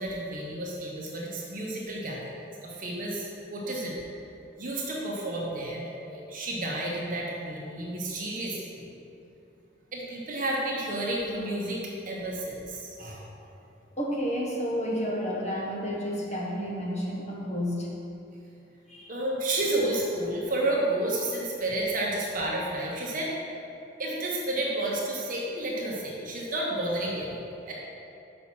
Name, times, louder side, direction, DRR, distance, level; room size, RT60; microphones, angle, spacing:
voice 1, 0.0-2.3 2.6-4.0 4.6-8.9 9.9-13.2 19.1-23.3 24.0-27.7, right 1 dB, 45° right, -3 dB, 1.0 m, -31 dB
voice 2, 14.0-17.9 18.9-19.1, equal, 35° left, -4 dB, 1.3 m, -31 dB
5.8 x 5.4 x 6.0 m, 2.8 s
head